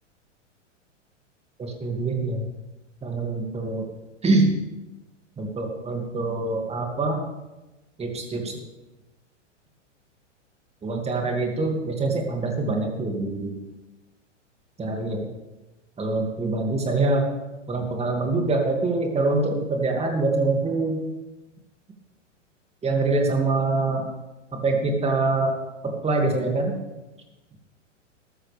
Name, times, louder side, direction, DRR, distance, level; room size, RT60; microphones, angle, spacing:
voice 1, 1.6-2.4 3.0-3.8 4.2-4.5 5.4-7.3 8.0-8.6 10.8-13.5 14.8-15.3 16.0-17.2 17.7-21.0 22.8-24.1 24.5-25.5 25.8-26.8, right 3 dB, 15° right, 2 dB, 2.5 m, -24 dB
13.5 x 13.0 x 3.6 m, 1.1 s
hypercardioid pair, 105°, 37 cm